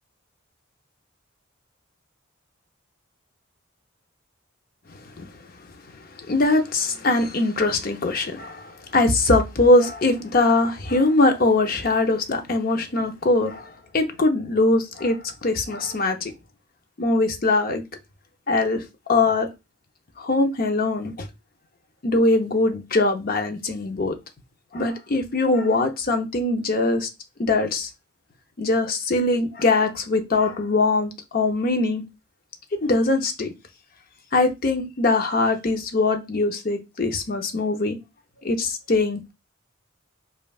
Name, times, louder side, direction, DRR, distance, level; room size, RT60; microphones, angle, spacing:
voice 1, 4.9-5.3 6.1-16.3 17.0-17.8 18.5-19.5 20.2-21.3 22.0-24.2 24.7-27.1 27.4-27.9 28.6-32.0 32.8-33.5 34.3-38.0 38.4-39.3, left 2 dB, 45° left, 0.6 m, -22 dB
5.3 x 2.4 x 2.3 m
head